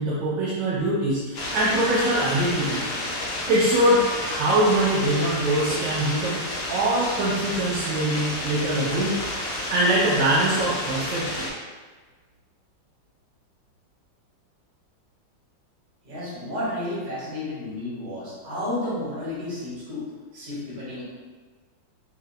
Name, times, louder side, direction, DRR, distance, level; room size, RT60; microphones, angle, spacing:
voice 1, 0.0-2.8 3.5-6.4 6.7-9.2 9.7-11.5, right 1 dB, 90° right, -8 dB, 1.7 m, -23 dB
sound 1, 1.3-11.5, left 1 dB, 60° left, 1.1 m, -31 dB
voice 2, 16.0-20.0 20.3-21.0, left 1 dB, 65° right, -9 dB, 2.3 m, -31 dB
5.6 x 2.7 x 2.6 m, 1.4 s
omnidirectional pair, 2.0 m